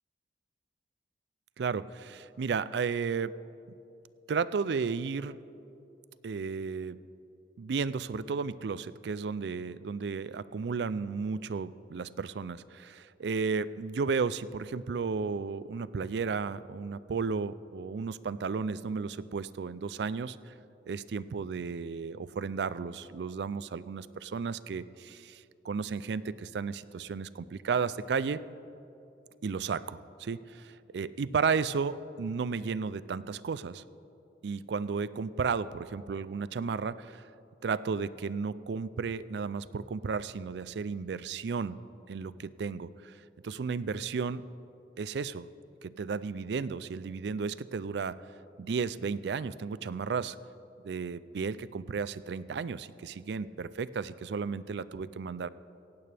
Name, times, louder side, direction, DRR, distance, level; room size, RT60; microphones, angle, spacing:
voice 1, 1.6-3.3 4.3-5.4 6.2-7.0 7.6-20.5 20.9-28.4 29.4-33.8 34.4-37.2 37.6-41.8 42.1-43.1 43.4-44.4 45.0-45.5 45.8-48.2 48.6-50.4 50.8-55.5, right 5 dB, 70° right, 17 dB, 0.4 m, -33 dB
17.5 x 16.0 x 3.4 m, 2.8 s
head